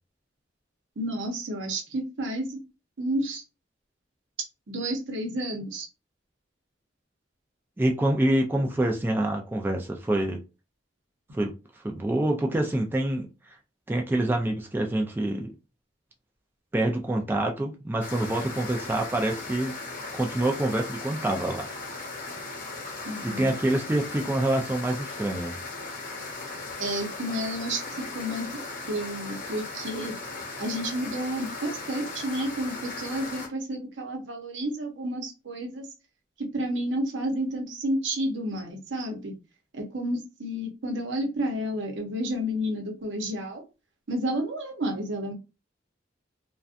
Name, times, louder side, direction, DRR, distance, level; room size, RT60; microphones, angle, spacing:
voice 1, 1.0-2.6 3.0-3.4 4.7-5.9 23.0-23.6 26.8-28.6 28.9-30.1 30.6-35.9 36.4-39.3 39.7-43.6 44.1-45.3, right 1 dB, 80° right, 0.7 m, -31 dB
voice 2, 7.8-10.4 11.3-11.5 11.8-13.6 13.9-15.5 16.7-19.7 20.1-21.7 23.2-25.5, right 1 dB, 10° right, 0.3 m, -26 dB
sound 1, 18.0-33.5, left 3 dB, 50° left, 0.8 m, -37 dB
2.5 x 2.2 x 2.4 m
head